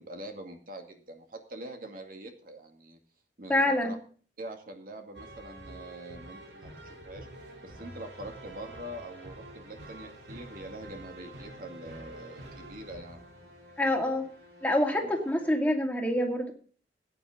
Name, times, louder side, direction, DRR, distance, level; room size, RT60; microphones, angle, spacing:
voice 1, 0.0-3.0 3.4-4.0 4.4-7.3 7.6-13.2 15.0-15.1, right 1 dB, 50° right, 4 dB, 2.3 m, -44 dB
voice 2, 3.5-4.0 13.8-14.2 14.6-16.5, left 1 dB, 10° left, 2 dB, 2.4 m, -26 dB
sound 1, 5.1-15.7, right 1 dB, 75° right, 3.3 m, -48 dB
16.0 x 9.8 x 3.8 m, 0.44 s
head